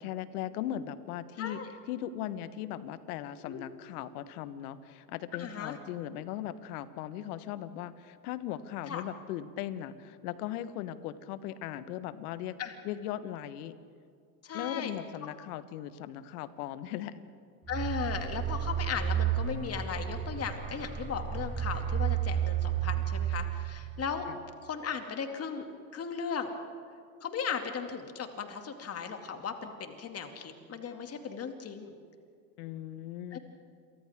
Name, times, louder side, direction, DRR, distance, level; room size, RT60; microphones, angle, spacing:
voice 1, 0.0-1.6 1.9-12.6 12.8-13.8 14.5-17.2 24.3-24.4 32.6-33.4, left 11 dB, 60° left, 13 dB, 1.4 m, -38 dB
voice 2, 1.4-1.7 3.4-3.6 5.3-5.8 8.9-9.0 12.6-12.7 14.4-15.0 17.7-24.3 24.6-25.6 25.9-26.5 27.2-31.9 33.3-33.4, left 6 dB, 30° left, 5 dB, 2.5 m, -37 dB
sound 1, 17.7-24.2, right 9 dB, 15° right, 1.1 m, -32 dB
29.5 x 24.0 x 3.7 m, 2.2 s
hypercardioid pair, 95°, 50 cm